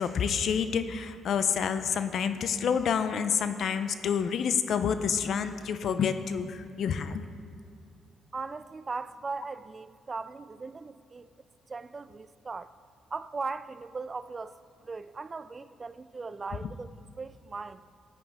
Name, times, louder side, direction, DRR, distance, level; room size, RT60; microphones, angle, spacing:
voice 1, 0.0-7.2 16.6-16.7, left 7 dB, 65° left, 0.6 m, -28 dB
voice 2, 8.3-11.3 11.7-12.7 13.1-14.6 14.8-17.8, right 4 dB, 30° right, 0.3 m, -38 dB
13.5 x 9.4 x 3.6 m
cardioid pair, 90°, 0 cm